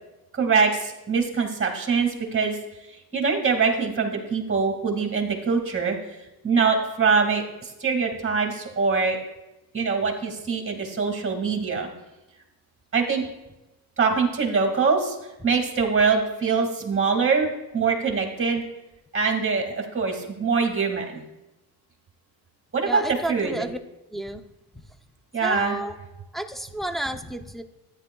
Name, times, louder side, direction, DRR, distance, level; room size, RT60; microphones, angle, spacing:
voice 1, 0.3-2.6 3.1-6.0 6.4-9.2 9.7-11.9 12.9-13.2 14.0-15.2 15.4-18.6 19.1-21.2 22.7-23.6 25.3-25.8, right 5 dB, 25° right, 3 dB, 2.1 m, -23 dB
voice 2, 22.9-23.8 24.1-24.4 25.4-26.0 26.3-27.6, right 1 dB, ahead, 4 dB, 0.6 m, -31 dB
13.0 x 9.8 x 2.3 m, 0.98 s
cardioid pair, 90°, 47 cm